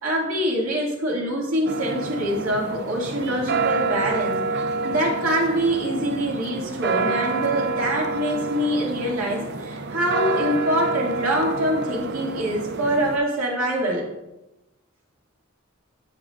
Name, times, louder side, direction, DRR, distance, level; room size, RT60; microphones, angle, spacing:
voice 1, 0.0-4.4 4.8-14.1, equal, 85° right, -3 dB, 2.2 m, -24 dB
sound 1, 1.6-13.2, right 3 dB, 55° right, 0.5 m, -28 dB
8.9 x 7.5 x 2.5 m, 0.96 s
head